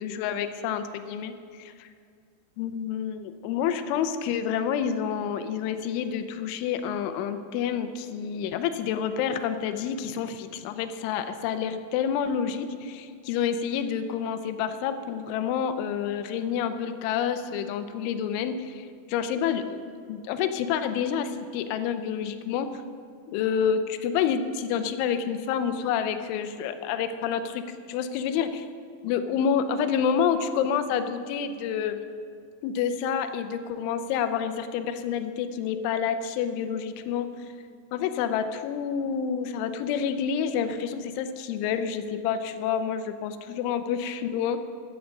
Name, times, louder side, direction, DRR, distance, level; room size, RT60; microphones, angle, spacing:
voice 1, 0.0-1.9 2.6-19.8 20.1-22.8 23.3-27.6 27.9-28.7 29.0-32.1 32.6-37.5 37.9-44.6, left 7 dB, 90° left, 9 dB, 3.1 m, -28 dB
15.0 x 10.0 x 5.3 m, 2.2 s
omnidirectional pair, 5.3 m